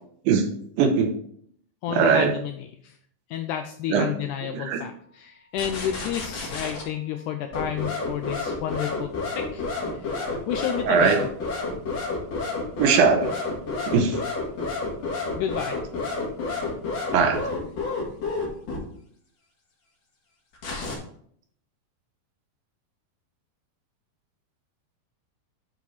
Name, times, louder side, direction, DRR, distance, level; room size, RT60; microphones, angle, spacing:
voice 1, 0.8-1.1 1.9-2.3 3.9-4.1 4.5-4.8 10.9-11.2 12.8-13.4 13.9-14.2 17.1-17.5, right 6 dB, 80° right, 4 dB, 2.7 m, -20 dB
voice 2, 1.8-2.9 3.3-9.7 9.9-11.3 15.4-15.8, left 10 dB, 85° left, 6 dB, 1.7 m, -31 dB
sound 1, 5.6-6.8 7.5-18.8 20.5-21.0, left 3 dB, 50° left, 2.7 m, -29 dB
9.6 x 4.2 x 4.2 m, 0.64 s
omnidirectional pair, 4.1 m